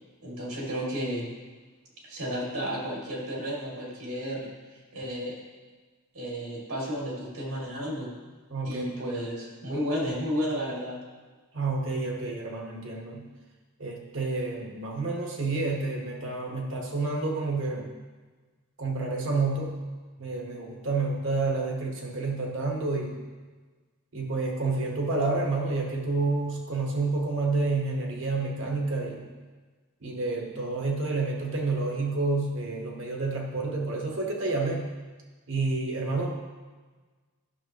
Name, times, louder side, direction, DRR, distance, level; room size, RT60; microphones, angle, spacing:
voice 1, 0.2-1.3 2.0-4.5 4.9-5.4 6.1-8.1 8.6-11.0, equal, 75° right, -4 dB, 2.5 m, -32 dB
voice 2, 8.5-8.9 11.5-13.3 13.8-17.9 18.8-19.8 20.2-23.2 24.1-29.3 30.0-34.9 35.5-36.3, right 3 dB, 60° right, 0 dB, 1.3 m, -29 dB
11.5 x 6.3 x 3.0 m, 1.4 s
head